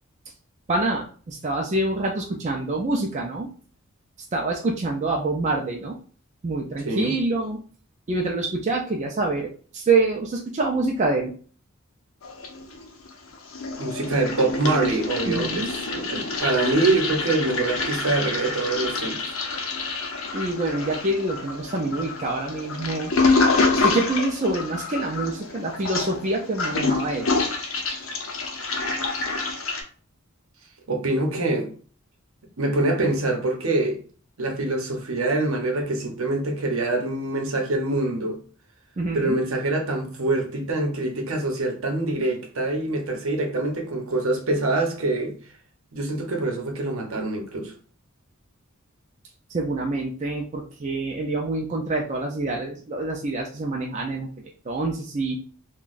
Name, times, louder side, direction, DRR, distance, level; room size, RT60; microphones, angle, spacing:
voice 1, 0.7-3.5 4.3-6.0 6.4-7.6 8.1-11.3 15.3-15.7 20.3-23.1 23.7-27.3 39.0-39.4 49.5-55.4, right 2 dB, 35° right, 0.4 m, -26 dB
Toilet flush, 12.2-13.1 13.3-29.8, left 3 dB, 70° left, 0.7 m, -27 dB
voice 2, 13.8-19.3 30.9-31.7 32.6-34.0 34.4-38.4 39.1-45.3 45.9-47.7, right 2 dB, 75° right, 0.8 m, -25 dB
3.8 x 2.2 x 2.5 m
head